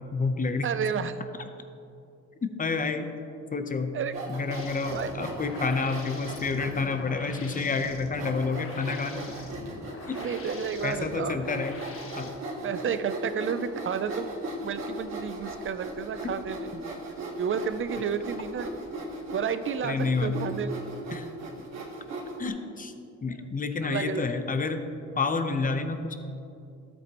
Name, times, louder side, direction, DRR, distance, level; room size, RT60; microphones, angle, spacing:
voice 1, 0.1-0.7 2.6-3.1 3.5-4.0 4.3-9.2 10.8-11.7 12.2-12.3 16.2-16.3 16.7-16.8 19.8-20.4 21.1-21.3 22.4-22.9 23.2-24.8 25.2-26.2, left 4 dB, 25° left, 8 dB, 0.8 m, -29 dB
voice 2, 0.6-1.2 3.9-4.1 4.9-5.1 10.2-11.4 12.6-14.3 14.6-16.7 17.4-18.7 19.3-20.7 23.8-24.3, right 7 dB, 45° right, 11 dB, 0.5 m, -31 dB
Sawing, 4.0-6.9 7.5-7.6 8.1-22.5, right 2 dB, 65° right, 2.4 m, -38 dB
sound 1, 4.5-12.3, left 3 dB, 45° left, 1.4 m, -44 dB
sound 2, 5.4-8.1 8.6-9.6 12.5-12.6 13.1-13.4, right 1 dB, 5° right, 1.7 m, -48 dB
13.0 x 8.4 x 3.0 m, 2.7 s
cardioid pair, 90°, 30 cm